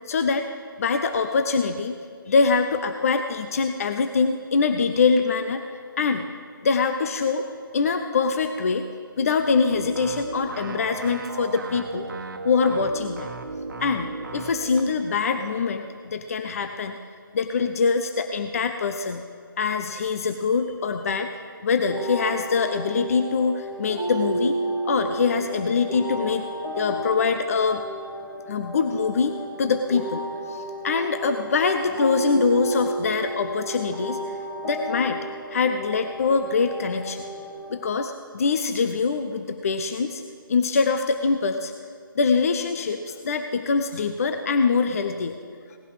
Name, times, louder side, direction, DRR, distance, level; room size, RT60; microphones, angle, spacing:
voice 1, 0.1-0.5 0.8-2.0 2.3-5.6 6.0-6.3 6.6-7.5 7.7-8.9 9.2-12.1 12.4-13.3 13.8-17.0 17.3-19.2 19.6-21.3 21.6-24.6 24.8-26.5 26.8-27.8 28.5-30.2 30.5-34.2 34.6-35.2 35.5-37.2 37.7-40.2 40.5-41.7 42.2-45.4, left 5 dB, 40° left, 7 dB, 0.6 m, -24 dB
sound 1, 9.7-14.9, right 3 dB, 60° right, 1.3 m, -35 dB
sound 2, 21.9-37.9, right 1 dB, 15° left, 2.5 m, -32 dB
18.0 x 11.0 x 4.8 m, 2.2 s
figure-of-eight pair, 155°, 12 cm